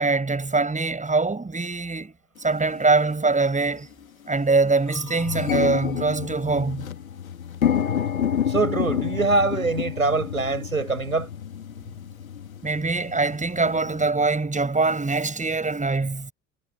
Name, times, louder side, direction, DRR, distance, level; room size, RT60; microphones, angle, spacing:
voice 1, 0.0-2.1 2.4-3.9 4.3-6.9 12.6-16.3, right 3 dB, 20° right, 7.1 m, -23 dB
sound 1, 2.5-2.6 3.4-3.6 4.0-4.1 4.4-14.1, left 9 dB, 80° left, 2.3 m, -29 dB
voice 2, 8.5-11.3, right 3 dB, 90° right, 5.7 m, -23 dB
figure-of-eight pair, 55°, 41 cm